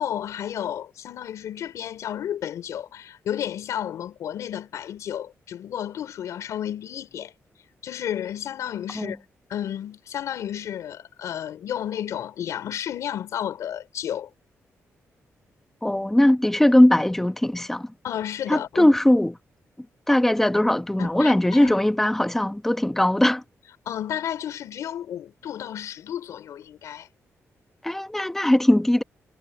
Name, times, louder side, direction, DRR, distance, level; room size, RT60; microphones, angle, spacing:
voice 1, 0.0-7.3 7.8-9.2 9.5-14.3 18.0-18.9 21.0-21.7 23.9-27.1, left 10 dB, 90° left, 4.1 m, -32 dB
voice 2, 15.8-17.9 18.5-19.3 20.1-23.4 27.8-29.0, left 1 dB, 5° left, 1.2 m, -20 dB
cardioid pair, 130°, 5 cm